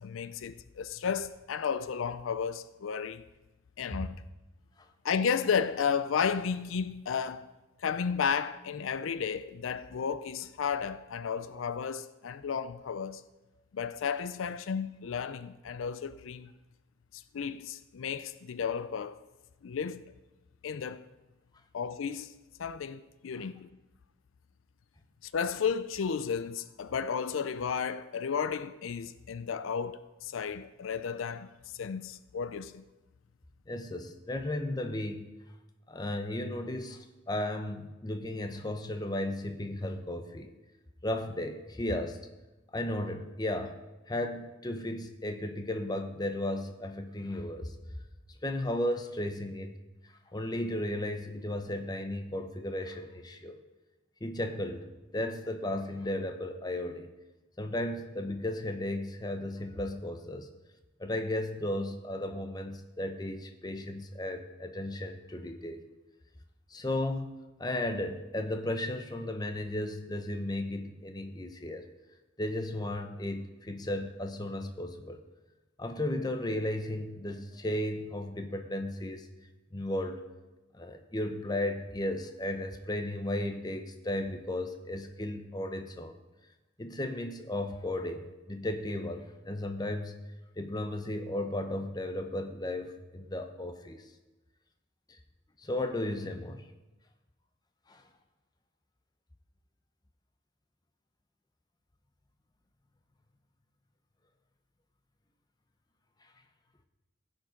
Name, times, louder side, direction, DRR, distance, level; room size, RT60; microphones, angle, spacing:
voice 1, 0.0-3.2 3.8-4.2 5.0-7.5 7.8-13.2 13.7-16.5 17.1-19.2 19.6-20.1 20.6-21.0 21.7-22.3 22.6-23.7 25.2-31.5 31.7-32.8, left 6 dB, 90° left, 0.4 m, -33 dB
voice 2, 33.7-35.3 35.9-40.5 41.0-42.2 42.7-43.8 44.1-47.7 48.4-49.8 50.3-53.6 54.2-57.1 57.6-60.5 61.0-65.9 66.7-67.3 67.6-71.9 72.4-75.2 75.8-79.3 79.7-80.2 80.7-86.2 86.8-90.1 90.6-94.1 95.6-96.7 97.9-98.0, left 1 dB, 20° left, 0.7 m, -35 dB
16.0 x 5.4 x 5.1 m
head